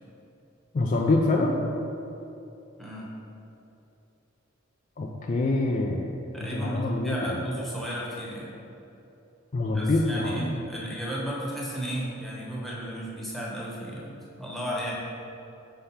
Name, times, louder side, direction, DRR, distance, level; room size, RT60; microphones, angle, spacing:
voice 1, 0.7-1.6 5.0-6.1 6.4-7.5 9.5-10.5, left 2 dB, 40° left, 0 dB, 0.4 m, -25 dB
voice 2, 6.3-8.5 9.7-14.9, equal, ahead, -5 dB, 1.0 m, -34 dB
5.6 x 3.3 x 5.6 m, 2.8 s
head